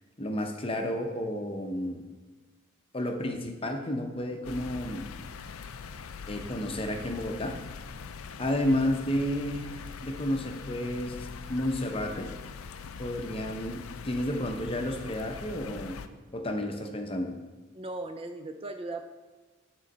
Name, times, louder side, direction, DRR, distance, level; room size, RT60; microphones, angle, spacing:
voice 1, 0.2-2.0 2.9-5.1 6.3-7.6 8.4-9.7 10.0-11.2 11.5-12.3 13.0-17.3, left 1 dB, 25° left, 4 dB, 0.7 m, -31 dB
sound 1, 4.4-16.1, left 5 dB, 85° left, 0.4 m, -42 dB
voice 2, 17.7-19.1, right 2 dB, 25° right, 6 dB, 0.4 m, -38 dB
9.4 x 3.8 x 5.3 m, 1.3 s
head